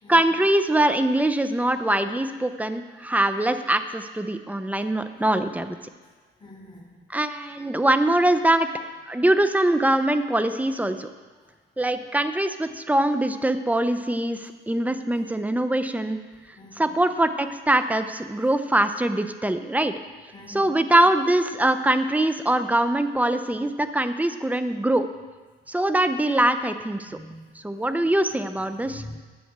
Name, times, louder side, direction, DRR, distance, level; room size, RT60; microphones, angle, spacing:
voice 1, 0.1-5.8 7.1-8.7 9.1-11.1 11.8-16.2 16.8-19.9 20.5-25.1 25.7-27.2 27.6-29.0, right 1 dB, 5° right, 10 dB, 0.8 m, -23 dB
voice 2, 6.4-6.9 16.6-16.9 20.3-20.7 27.1-27.8 28.0-28.1 28.7-29.1, left 1 dB, 25° left, -1 dB, 3.3 m, -44 dB
11.0 x 7.8 x 6.8 m, 1.4 s
cardioid pair, 90°, 20 cm